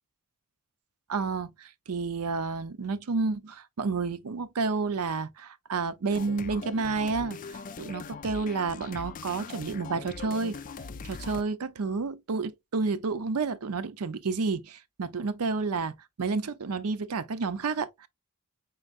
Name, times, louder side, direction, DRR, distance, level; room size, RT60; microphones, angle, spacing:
voice 1, 1.1-10.6 11.0-18.1, right 4 dB, 80° right, 0.6 m, -30 dB
sound 1, 6.1-11.4, left 5 dB, 35° left, 0.4 m, -41 dB
5.4 x 3.8 x 2.4 m
head